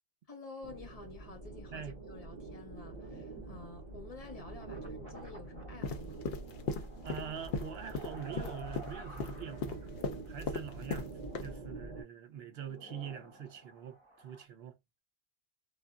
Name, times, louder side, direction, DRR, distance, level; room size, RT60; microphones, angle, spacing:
voice 1, 0.3-6.3, left 3 dB, 35° left, 0.9 m, -50 dB
sound 1, 0.6-12.0, right 2 dB, 45° right, 1.5 m, -46 dB
sound 2, 2.9-10.0 10.4-10.5 12.2-14.4, equal, 5° left, 1.3 m, -53 dB
sound 3, 5.8-11.1 11.4-11.5, left 4 dB, 65° left, 0.8 m, -37 dB
voice 2, 7.0-9.9 10.3-14.8, right 8 dB, 65° right, 0.9 m, -44 dB
3.4 x 2.2 x 2.2 m
omnidirectional pair, 1.1 m